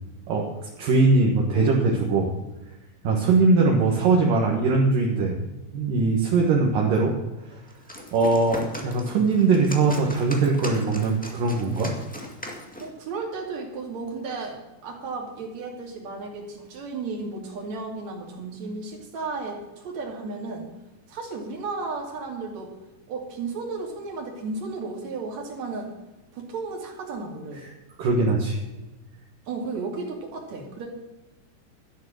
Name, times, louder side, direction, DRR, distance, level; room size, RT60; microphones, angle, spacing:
voice 1, 0.8-2.3 3.0-5.3 5.7-7.1 7.5-7.6 8.1-11.9 28.0-28.6, right 3 dB, 65° right, -2 dB, 3.0 m, -21 dB
sound 1, 7.7-13.0, equal, 10° left, 0.4 m, -38 dB
voice 2, 12.8-20.7 21.1-22.7 23.1-25.9 26.3-27.7 29.5-30.9, right 3 dB, 50° right, 0 dB, 3.7 m, -34 dB
12.5 x 11.0 x 6.4 m, 1.1 s
omnidirectional pair, 4.3 m